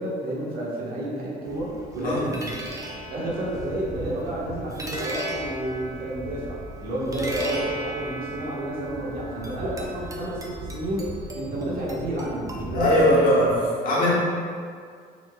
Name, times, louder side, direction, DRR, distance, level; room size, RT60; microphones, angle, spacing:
voice 1, 0.0-2.5 3.1-11.1 11.3-13.4, right 1 dB, 60° right, -6 dB, 1.4 m, -30 dB
sound 1, 1.5-13.6, right 1 dB, 20° right, 0.6 m, -35 dB
voice 2, 12.7-13.5 13.8-14.1, equal, 55° left, -6 dB, 1.3 m, -19 dB
5.8 x 3.4 x 2.3 m, 2.1 s
cardioid pair, 110°, 17 cm